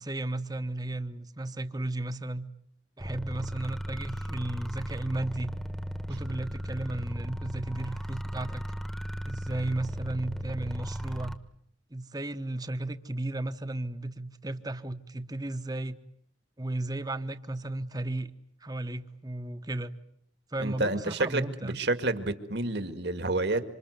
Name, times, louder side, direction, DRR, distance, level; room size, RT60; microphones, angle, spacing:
voice 1, 0.0-2.5 3.0-5.5 6.1-8.6 9.3-11.3 11.9-16.0 16.6-18.3 18.6-19.9 20.5-21.8, right 2 dB, 20° right, 10 dB, 1.1 m, -34 dB
sound 1, 3.0-11.4, equal, ahead, 1.3 m, -36 dB
voice 2, 20.6-23.6, right 2 dB, 60° right, 9 dB, 2.0 m, -29 dB
27.5 x 26.0 x 8.1 m, 0.69 s
head